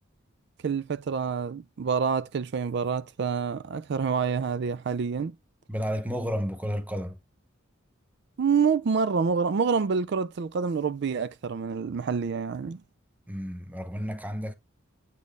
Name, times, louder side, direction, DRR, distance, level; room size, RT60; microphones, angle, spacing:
voice 1, 0.6-5.3 8.4-12.8, right 5 dB, 60° right, 0.4 m, -27 dB
voice 2, 5.7-7.2 13.3-14.5, equal, 10° right, 0.8 m, -32 dB
8.3 x 4.3 x 3.1 m
head